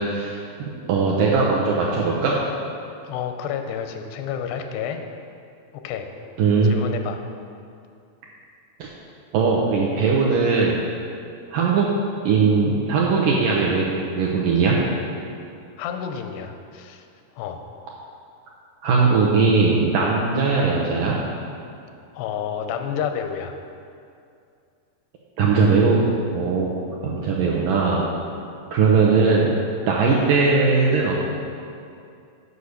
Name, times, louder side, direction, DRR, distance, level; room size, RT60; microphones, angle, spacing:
voice 1, 0.0-2.4 6.4-6.7 8.8-8.9 9.3-10.8 11.5-11.9 12.2-14.8 18.8-21.2 25.4-26.0 26.3-26.7 27.0-28.1 28.7-29.6 29.9-31.2, right 4 dB, 80° right, -4 dB, 1.9 m, -19 dB
voice 2, 3.0-5.0 5.7-6.1 6.6-7.2 15.8-17.1 17.4-17.6 22.1-23.6, left 8 dB, 90° left, 6 dB, 2.8 m, -30 dB
8.3 x 5.5 x 6.4 m, 2.5 s
omnidirectional pair, 4.6 m